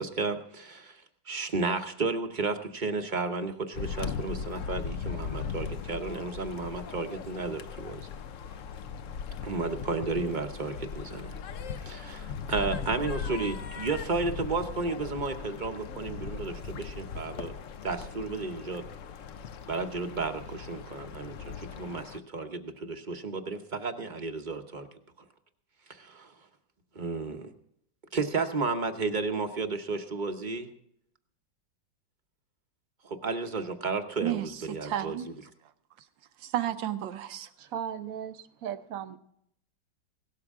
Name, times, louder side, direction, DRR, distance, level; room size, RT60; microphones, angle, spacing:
voice 1, 0.0-8.1 9.4-11.4 11.8-17.5 17.8-18.8 19.7-24.9 25.9-26.3 26.9-27.5 28.1-30.7 33.0-35.3, right 3 dB, 35° right, 0.8 m, -33 dB
sound 1, 3.7-22.2, left 6 dB, 65° left, 0.8 m, -39 dB
voice 2, 34.2-35.3 36.4-37.5, right 12 dB, 85° right, 1.6 m, -32 dB
voice 3, 37.6-39.2, right 9 dB, 60° right, 1.0 m, -37 dB
17.5 x 12.5 x 3.6 m
omnidirectional pair, 2.0 m